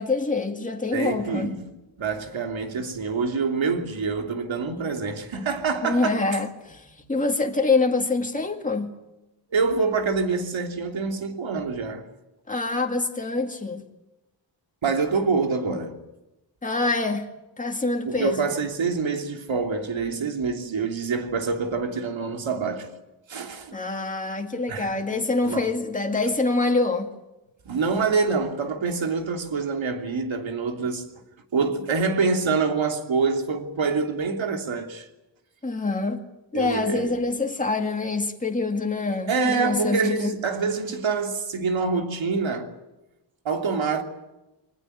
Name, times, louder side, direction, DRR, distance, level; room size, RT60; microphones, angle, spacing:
voice 1, 0.0-1.5 5.8-8.9 12.5-13.8 16.6-17.3 17.6-18.4 23.7-27.1 35.6-36.2 36.5-40.3, left 3 dB, 15° left, 2.2 m, -25 dB
voice 2, 0.9-1.7 2.0-6.2 9.5-12.0 14.8-16.0 18.0-22.9 23.3-23.8 24.7-24.9 25.4-25.7 27.6-31.1 31.5-35.1 36.5-37.1 39.3-42.7 43.4-44.0, right 4 dB, 85° right, 3.1 m, -26 dB
23.0 x 20.0 x 9.4 m
wide cardioid pair, 175°, 45 cm